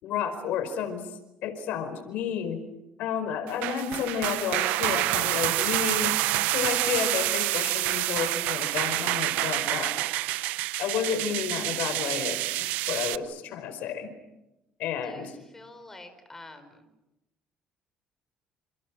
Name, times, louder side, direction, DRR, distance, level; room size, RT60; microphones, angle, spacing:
voice 1, 0.0-1.1 1.4-2.6 3.0-6.1 6.5-10.0 10.8-14.1 14.8-15.4, left 7 dB, 75° left, 10 dB, 4.8 m, -31 dB
sound 1, 3.5-13.2, right 17 dB, 85° right, 0.9 m, -28 dB
voice 2, 15.0-16.9, left 2 dB, 15° left, 8 dB, 5.2 m, -48 dB
29.5 x 28.5 x 6.3 m, 0.94 s
cardioid pair, 110°, 3 cm